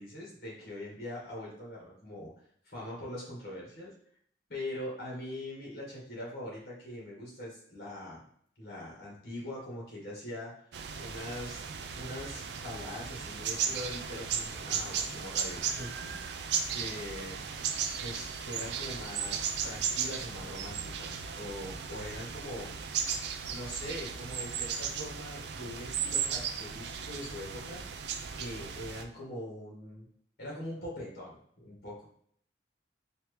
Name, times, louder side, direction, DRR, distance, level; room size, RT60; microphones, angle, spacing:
voice 1, 0.0-2.3 2.6-3.9 4.5-8.2 8.6-10.5 11.0-11.6 11.9-17.4 18.0-22.8 23.5-27.8 28.3-30.1 30.4-32.0, left 1 dB, 55° left, -4 dB, 1.7 m, -42 dB
sound 1, 10.7-29.0, right 7 dB, 70° right, 0.4 m, -36 dB
4.4 x 2.8 x 3.3 m, 0.64 s
head